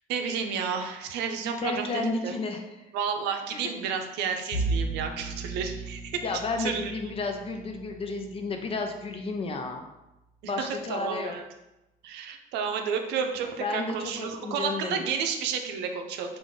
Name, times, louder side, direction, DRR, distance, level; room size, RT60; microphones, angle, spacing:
voice 1, 0.1-2.3 2.9-6.2 6.6-6.9 10.6-11.4 12.0-16.4, right 6 dB, 90° right, 5 dB, 0.6 m, -31 dB
voice 2, 1.6-2.9 3.5-3.6 6.2-9.8 10.4-11.4 13.6-15.0, left 3 dB, 35° left, 4 dB, 0.6 m, -32 dB
Bowed string instrument, 4.5-9.6, right 3 dB, 75° left, 0.7 m, -35 dB
5.0 x 2.5 x 3.8 m, 0.96 s
cardioid pair, 110°, 17 cm